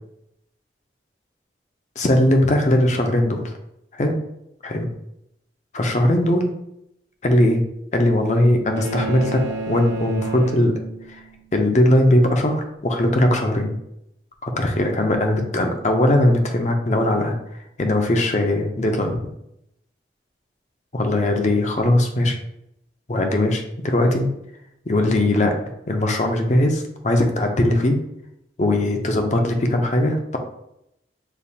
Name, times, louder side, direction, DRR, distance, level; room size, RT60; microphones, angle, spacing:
voice 1, 2.0-3.5 3.9-4.2 4.6-4.9 5.7-6.5 7.2-7.6 7.9-10.8 11.1-11.2 11.5-13.8 14.4-17.4 17.8-19.2 20.9-22.4 23.1-24.3 24.9-25.6 25.9-28.0 28.6-30.4, left 1 dB, 40° left, 4 dB, 0.6 m, -19 dB
sound 1, 8.8-11.3, right 2 dB, 70° right, 0.7 m, -31 dB
6.9 x 2.4 x 2.7 m, 0.81 s
head